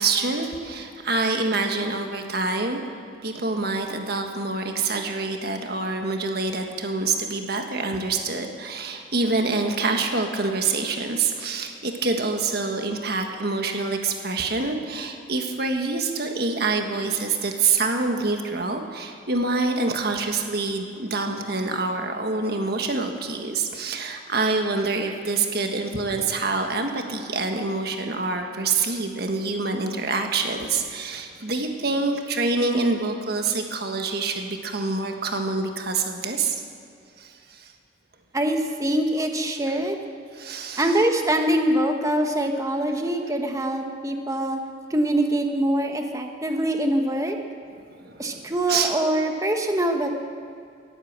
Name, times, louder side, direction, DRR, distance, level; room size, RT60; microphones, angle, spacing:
voice 1, 0.0-2.8 3.2-36.6 37.2-37.7 40.3-40.9 47.9-48.9, right 3 dB, 55° right, 4 dB, 1.6 m, -26 dB
voice 2, 38.3-40.0 40.8-44.6 44.9-47.4 48.2-50.1, right 1 dB, 15° right, 4 dB, 1.1 m, -24 dB
18.0 x 9.0 x 7.5 m, 2.3 s
head